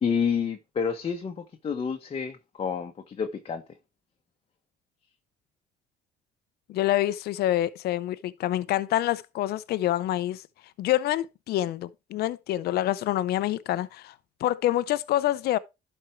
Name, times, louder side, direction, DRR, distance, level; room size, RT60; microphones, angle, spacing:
voice 1, 0.0-3.6, left 6 dB, 35° left, 1.2 m, -29 dB
voice 2, 6.7-10.4 10.8-14.1 14.4-15.6, left 14 dB, 70° left, 0.7 m, -26 dB
12.0 x 4.5 x 4.4 m
cardioid pair, 110°, 17 cm